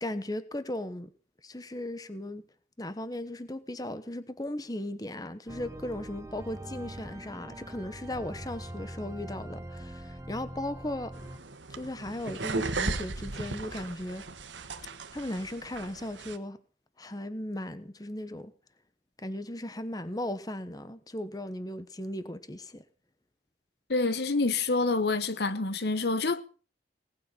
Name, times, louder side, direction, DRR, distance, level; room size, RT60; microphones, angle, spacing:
voice 1, 0.0-1.1 1.4-2.5 2.8-11.1 11.7-14.2 15.1-16.6 17.0-18.5 19.2-22.8, left 1 dB, 20° left, 1.1 m, -37 dB
sound 1, 5.5-11.4, right 1 dB, 15° right, 0.8 m, -43 dB
sound 2, 11.1-16.4, right 3 dB, 90° right, 1.4 m, -36 dB
voice 2, 23.9-26.4, left 3 dB, 60° left, 1.1 m, -27 dB
19.0 x 6.7 x 9.8 m
head